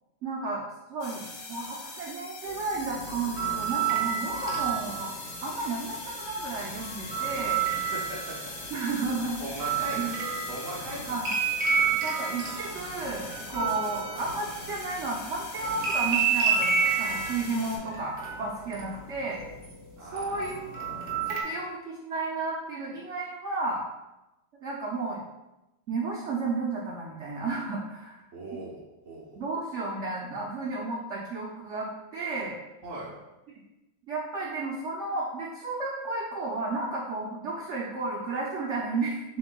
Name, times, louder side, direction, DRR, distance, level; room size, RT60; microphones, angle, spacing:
voice 1, 0.2-0.6 0.9-5.1 5.4-7.6 8.7-9.4 10.0-10.1 11.0-11.3 12.0-19.4 20.0-20.7 21.3-23.8 24.6-25.2 25.9-28.2 29.3-32.5 34.1-39.4, right 3 dB, 85° right, -3 dB, 0.6 m, -33 dB
sound 1, 1.0-17.8, left 3 dB, 80° left, 1.7 m, -42 dB
sound 2, 2.7-5.3 6.5-8.7 9.0-14.9 15.6-19.7 20.2-21.4, right 6 dB, 35° right, 0.7 m, -30 dB
voice 2, 7.6-8.4 9.4-11.2 11.7-11.9 20.0-20.5 21.5-21.6 28.3-29.4 32.8-33.1, right 1 dB, 55° right, -6 dB, 1.1 m, -40 dB
6.9 x 3.1 x 2.2 m, 1.0 s
omnidirectional pair, 2.0 m